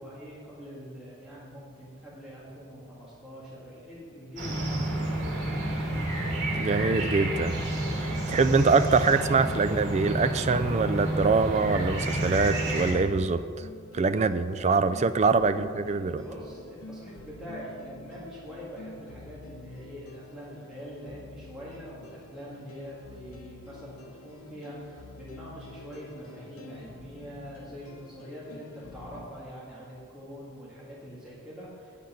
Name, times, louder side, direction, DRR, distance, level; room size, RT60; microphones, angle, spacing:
voice 1, 0.0-5.4 16.2-32.0, equal, 5° right, -9 dB, 1.9 m, -44 dB
sound 1, 4.4-12.9, right 1 dB, 55° right, 2.9 m, -30 dB
voice 2, 6.5-7.6 8.3-13.7 13.9-16.2, right 4 dB, 35° right, 12 dB, 0.4 m, -24 dB
sound 2, 10.3-29.3, left 2 dB, 90° left, 1.0 m, -48 dB
9.0 x 8.4 x 5.7 m, 2.1 s
head